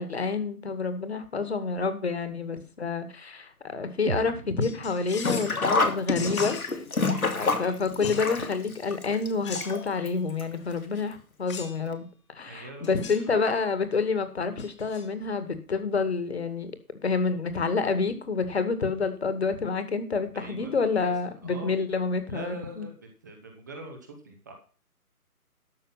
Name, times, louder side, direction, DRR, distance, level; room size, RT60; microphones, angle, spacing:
voice 1, 0.0-7.0 7.3-12.1 12.4-16.7 17.0-22.9, left 4 dB, 45° left, 10 dB, 2.1 m, -28 dB
sound 1, 4.1-8.0, right 5 dB, 55° right, 1.1 m, -41 dB
sound 2, 4.6-5.6 6.1-6.7 8.0-8.3 9.4-10.0 11.5-11.8 12.8-13.3 14.6-15.0, left 6 dB, 20° left, 1.6 m, -40 dB
Sink (filling or washing), 5.1-10.1 10.4-10.5 11.5-11.6 11.9-12.0, left 3 dB, 65° left, 2.5 m, -28 dB
voice 2, 7.0-7.8 12.5-13.3 20.3-21.7 22.3-24.5, right 1 dB, 10° right, 4 dB, 1.1 m, -43 dB
12.5 x 6.6 x 5.8 m, 0.38 s
figure-of-eight pair, 150°, 45 cm